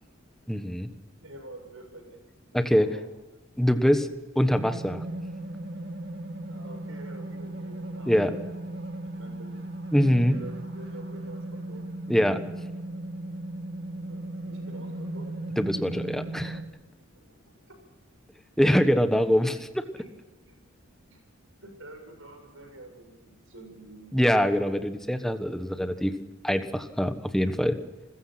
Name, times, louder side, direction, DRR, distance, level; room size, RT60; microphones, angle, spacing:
voice 1, 0.5-0.9 2.5-2.9 3.6-4.1 4.3-5.0 8.1-8.3 9.9-10.3 12.1-12.4 15.6-16.6 18.6-19.8 24.1-26.1 26.4-27.8, equal, ahead, 8 dB, 1.3 m, -23 dB
voice 2, 1.2-2.2 2.5-3.1 6.5-8.5 9.2-9.6 10.3-11.9 14.1-15.3 17.1-17.3 20.0-20.1 20.5-20.6 21.1-21.2 21.6-24.2, right 2 dB, 80° right, 4 dB, 7.3 m, -47 dB
sound 1, 4.6-16.6, right 1 dB, 55° right, 2.6 m, -37 dB
28.5 x 16.0 x 6.0 m, 1.1 s
head